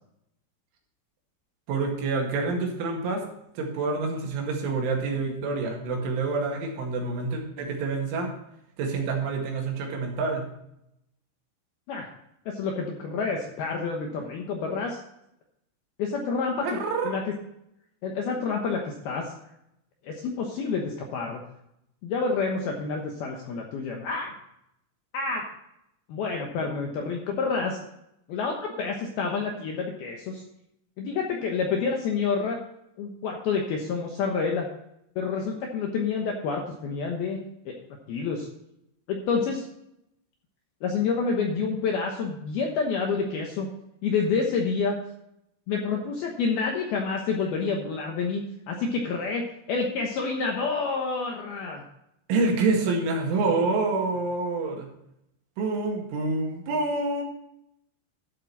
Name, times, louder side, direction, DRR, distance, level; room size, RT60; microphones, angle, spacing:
voice 1, 1.7-3.2 3.6-8.3 8.8-10.5 16.6-17.1 52.3-54.9 55.6-57.2, right 3 dB, 70° right, 1 dB, 4.3 m, -27 dB
voice 2, 12.5-15.0 16.0-17.3 18.0-19.3 20.0-21.4 22.0-24.3 25.1-25.5 26.1-27.8 28.3-30.4 31.0-32.6 33.0-34.7 35.2-37.4 37.7-37.8 38.1-38.5 39.1-39.7 40.8-43.7 44.0-45.0 45.7-48.4 48.7-51.8, left 5 dB, 70° left, 1 dB, 2.4 m, -28 dB
12.5 x 7.8 x 4.0 m, 0.79 s
omnidirectional pair, 5.9 m